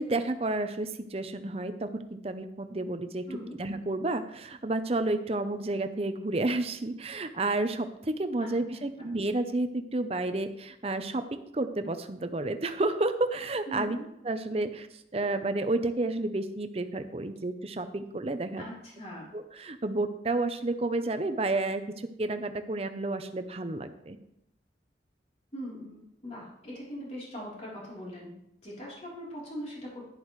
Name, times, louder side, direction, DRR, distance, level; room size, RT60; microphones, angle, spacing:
voice 1, 0.0-3.2 3.6-14.0 14.2-14.9 15.1-18.6 19.3-24.2, right 2 dB, 35° right, 9 dB, 0.7 m, -31 dB
voice 2, 8.4-9.1 13.7-14.0 18.6-19.3 25.5-28.3 28.6-30.0, equal, 35° left, -5 dB, 3.6 m, -41 dB
10.5 x 10.5 x 3.2 m, 0.80 s
head